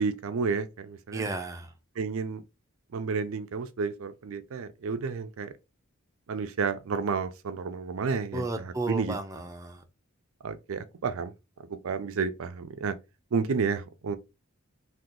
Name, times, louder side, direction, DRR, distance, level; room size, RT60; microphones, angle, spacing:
voice 1, 0.0-1.2 2.0-2.4 2.9-5.5 6.3-8.4 8.9-9.1 10.4-11.3 11.7-12.9 13.3-14.2, right 5 dB, 75° right, 0.4 m, -31 dB
voice 2, 1.1-1.7 8.3-9.8, right 2 dB, 15° right, 0.5 m, -33 dB
2.8 x 2.3 x 3.7 m
head